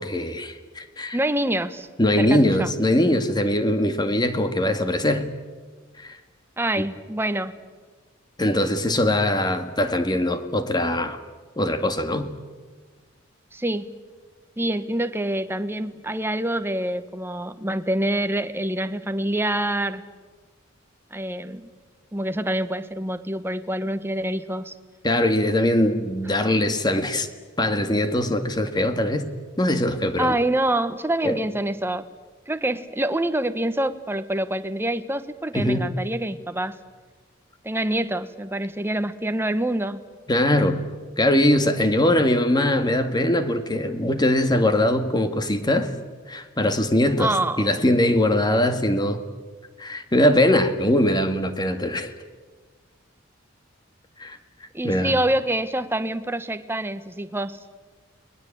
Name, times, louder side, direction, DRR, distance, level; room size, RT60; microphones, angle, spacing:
voice 1, 0.0-1.2 2.0-5.3 6.0-6.2 6.8-6.9 8.4-11.2 11.6-12.3 25.0-27.3 27.6-29.3 29.6-30.4 31.2-31.4 35.5-35.8 40.3-40.8 41.2-45.9 46.3-49.2 49.8-52.1 54.2-54.4 54.8-55.2, left 1 dB, 20° left, 8 dB, 1.9 m, -21 dB
voice 2, 1.1-1.9 2.2-2.7 6.6-7.6 13.5-14.0 14.6-20.0 21.1-21.7 22.1-24.7 30.2-32.0 32.5-36.8 37.6-40.0 47.2-47.7 54.7-57.6, right 1 dB, 10° right, 10 dB, 1.2 m, -26 dB
30.0 x 21.5 x 8.7 m, 1.4 s
head